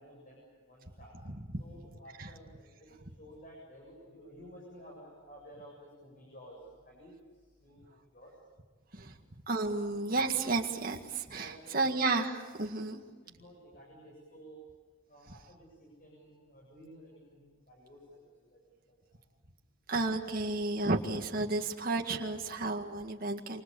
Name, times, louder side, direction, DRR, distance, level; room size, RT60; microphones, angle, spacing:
voice 1, 0.0-1.2 1.6-2.9 3.2-8.3 11.3-11.9 13.2-14.7 15.1-18.6 18.9-19.2, equal, 40° left, -2 dB, 7.8 m, -53 dB
voice 2, 9.5-13.0 19.9-23.6, right 3 dB, 45° right, 2 dB, 2.0 m, -32 dB
29.0 x 26.0 x 7.1 m, 1.4 s
head